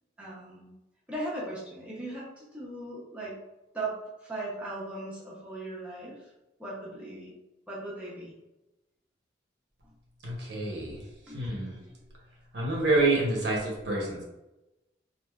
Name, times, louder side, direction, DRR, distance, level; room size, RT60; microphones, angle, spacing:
voice 1, 0.2-0.7 1.1-3.3 3.7-6.3 6.6-7.3 7.7-8.3 10.7-11.4, right 2 dB, 5° right, -7 dB, 0.6 m, -38 dB
voice 2, 10.2-11.0 11.3-11.8 12.5-14.2, right 2 dB, 65° right, -2 dB, 0.8 m, -27 dB
3.2 x 2.6 x 2.3 m, 0.96 s
head